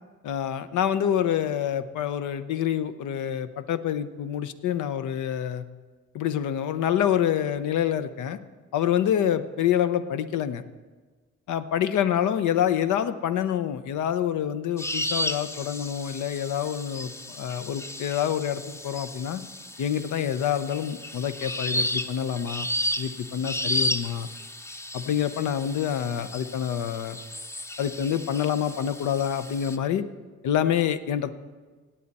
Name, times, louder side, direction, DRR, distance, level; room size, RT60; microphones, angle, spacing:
voice 1, 0.2-5.6 6.1-8.4 8.7-10.6 11.5-19.4 19.8-22.7 23.0-24.3 24.9-27.2 27.8-30.0 30.4-31.3, left 9 dB, 75° left, 11 dB, 0.7 m, -27 dB
sound 1, 14.8-29.8, left 1 dB, 10° left, 0.5 m, -33 dB
17.5 x 8.6 x 4.1 m, 1.4 s
cardioid pair, 90°, 30 cm